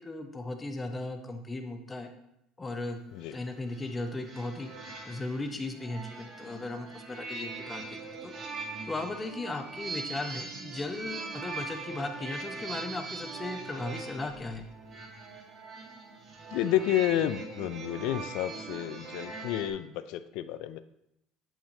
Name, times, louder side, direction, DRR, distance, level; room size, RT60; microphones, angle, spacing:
voice 1, 0.0-2.1 2.6-3.0 3.3-4.7 5.0-8.3 8.8-14.6, left 2 dB, 20° left, 5 dB, 0.9 m, -37 dB
sound 1, 3.1-19.7, right 4 dB, 45° right, 2.1 m, -41 dB
voice 2, 16.5-20.8, left 12 dB, 70° left, 13 dB, 0.4 m, -30 dB
7.2 x 5.9 x 2.7 m, 0.80 s
hypercardioid pair, 80°, 0 cm